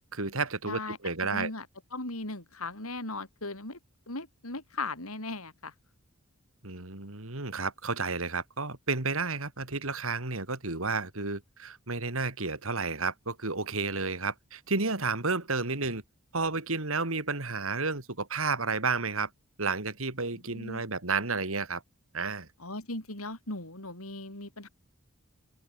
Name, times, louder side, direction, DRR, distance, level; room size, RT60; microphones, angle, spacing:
voice 1, 0.1-1.5 6.6-16.0 16.3-19.3 19.6-21.8 22.1-22.5, right 4 dB, 65° right, 3.1 m, -31 dB
voice 2, 0.7-1.7 1.9-3.8 4.1-5.7 20.5-20.8 22.6-24.7, left 2 dB, 80° left, 7.3 m, -38 dB
open air
head